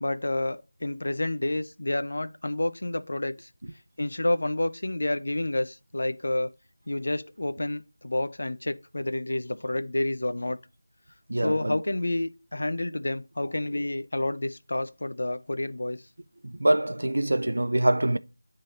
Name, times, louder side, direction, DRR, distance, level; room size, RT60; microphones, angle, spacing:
voice 1, 0.0-3.5 4.0-6.5 6.9-10.6 11.4-16.0, left 1 dB, 50° left, 0.5 m, -29 dB
voice 2, 11.3-11.8 16.4-18.2, right 1 dB, 70° right, 0.5 m, -25 dB
10.5 x 3.8 x 2.5 m
figure-of-eight pair, 180°, 0 cm